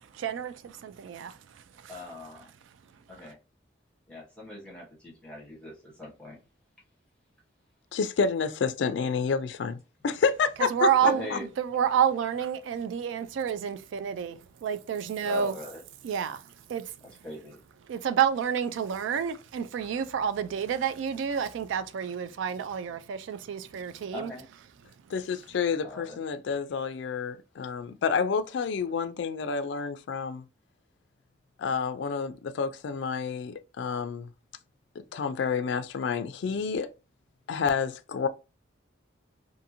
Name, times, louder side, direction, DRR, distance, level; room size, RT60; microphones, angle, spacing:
voice 1, 0.2-1.4 1.8-1.9 10.6-15.5 16.0-16.4 16.7-16.9 17.9-24.3, right 8 dB, 80° right, 0.3 m, -29 dB
voice 2, 1.9-2.5 3.1-3.4 4.1-6.4 11.0-11.4 15.2-15.8 17.2-17.6 24.1-24.5 25.8-26.2, left 2 dB, 5° left, 0.9 m, -41 dB
voice 3, 7.9-9.8 10.0-11.4 25.1-30.4 31.6-34.3 35.0-36.9 37.5-38.3, left 5 dB, 70° left, 0.3 m, -29 dB
2.6 x 2.6 x 2.8 m
head